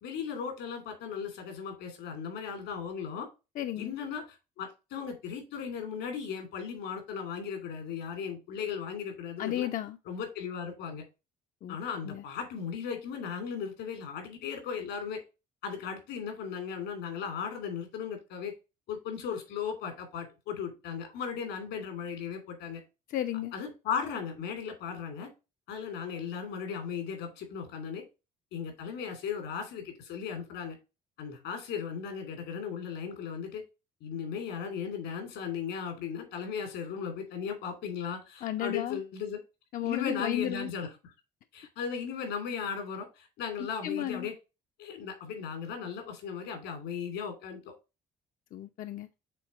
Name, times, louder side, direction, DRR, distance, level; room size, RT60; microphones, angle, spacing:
voice 1, 0.0-3.3 3.8-9.7 10.1-11.0 11.7-15.2 15.6-18.5 18.9-22.8 23.5-25.3 25.7-28.0 28.5-30.8 31.2-33.6 34.0-39.4 39.8-40.9 41.5-44.3 44.8-47.7, left 6 dB, 85° left, 2.7 m, -37 dB
voice 2, 3.6-4.0 9.4-10.0 11.6-11.8 12.0-12.2 23.1-23.5 38.4-39.0 39.7-40.7 43.6-44.3 48.5-49.1, left 12 dB, 55° left, 0.5 m, -33 dB
7.6 x 3.4 x 4.2 m
cardioid pair, 110°, 17 cm